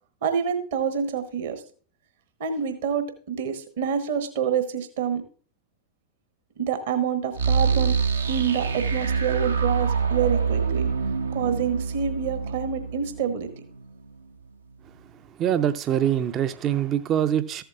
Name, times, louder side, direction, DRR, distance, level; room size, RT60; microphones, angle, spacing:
voice 1, 0.2-1.6 2.4-5.2 6.6-8.0 8.3-10.8 11.3-13.5, right 7 dB, 55° right, 1.1 m, -27 dB
sound 1, 7.3-14.2, right 5 dB, 75° right, 0.6 m, -26 dB
voice 2, 15.4-17.6, right 10 dB, 30° right, 0.4 m, -24 dB
14.0 x 7.9 x 2.4 m
figure-of-eight pair, 90°, 0 cm